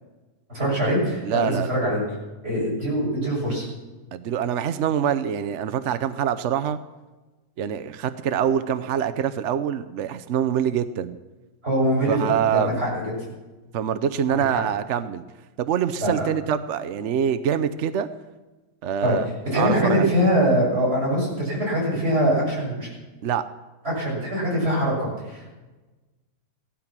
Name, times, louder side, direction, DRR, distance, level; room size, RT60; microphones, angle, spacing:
voice 1, 0.5-2.0 2.4-3.7 11.6-12.9 14.3-14.6 16.0-16.2 19.0-19.2 19.5-22.9 23.8-25.5, equal, 30° right, -4 dB, 6.9 m, -23 dB
voice 2, 1.2-1.7 4.1-6.8 7.6-11.2 12.1-12.8 13.7-15.2 15.6-18.1 18.8-19.3 19.5-20.1 23.2-23.5, right 9 dB, 75° right, 12 dB, 0.6 m, -25 dB
16.5 x 13.0 x 6.0 m, 1.2 s
omnidirectional pair, 2.1 m